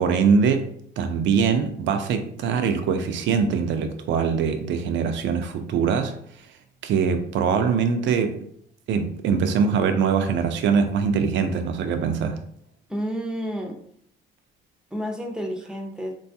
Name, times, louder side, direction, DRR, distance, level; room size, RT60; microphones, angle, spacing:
voice 1, 0.0-6.2 6.8-8.4 8.9-12.4, right 6 dB, 70° right, 0.4 m, -23 dB
voice 2, 12.9-13.8 14.9-16.1, equal, 5° right, 0.5 m, -30 dB
3.2 x 2.3 x 2.6 m
cardioid pair, 90°, 20 cm